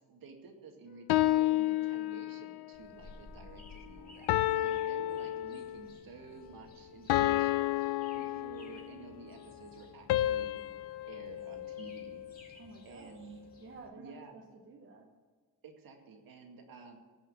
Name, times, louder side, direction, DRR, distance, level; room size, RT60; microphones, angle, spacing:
voice 1, 0.1-10.6 11.1-12.2 12.5-13.4 14.0-14.4 15.6-17.0, right 4 dB, 60° right, 2 dB, 2.2 m, -51 dB
sound 1, 1.1-2.6 4.3-5.9 7.1-9.0 10.1-12.4, left 15 dB, 80° left, 0.6 m, -31 dB
sound 2, 2.7-13.9, left 2 dB, 25° left, 2.0 m, -57 dB
voice 2, 12.6-15.1, right 3 dB, 30° right, 2 dB, 0.9 m, -53 dB
17.5 x 6.0 x 8.5 m, 1.5 s
cardioid pair, 175°, 39 cm